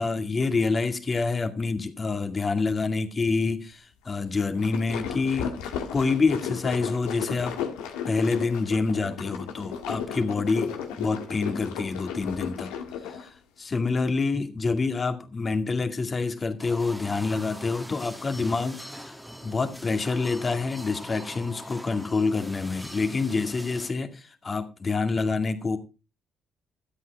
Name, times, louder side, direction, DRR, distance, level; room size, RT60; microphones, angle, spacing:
voice 1, 0.0-5.5 5.9-7.6 8.0-12.7 13.1-19.2 19.4-25.8, left 4 dB, 35° left, 2.1 m, -27 dB
sound 1, 4.4-13.3, left 7 dB, 85° left, 1.6 m, -34 dB
sound 2, 16.6-23.9, equal, 5° right, 1.8 m, -42 dB
13.0 x 8.3 x 4.6 m
hypercardioid pair, 55°, 0 cm